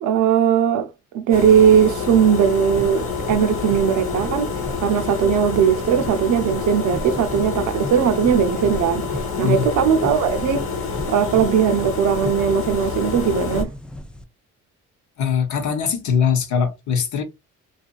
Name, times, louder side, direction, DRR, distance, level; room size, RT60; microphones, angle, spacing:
voice 1, 0.0-0.9 1.1-4.5 4.8-9.1 9.4-10.7 11.1-13.7, right 8 dB, 75° right, 0.6 m, -18 dB
sound 1, 1.3-13.6, left 5 dB, 45° left, 1.0 m, -27 dB
sound 2, 2.6-14.2, equal, 5° left, 0.4 m, -36 dB
voice 2, 9.3-9.7 15.2-17.2, left 7 dB, 70° left, 0.9 m, -21 dB
2.7 x 2.4 x 2.3 m
cardioid pair, 90°, 30 cm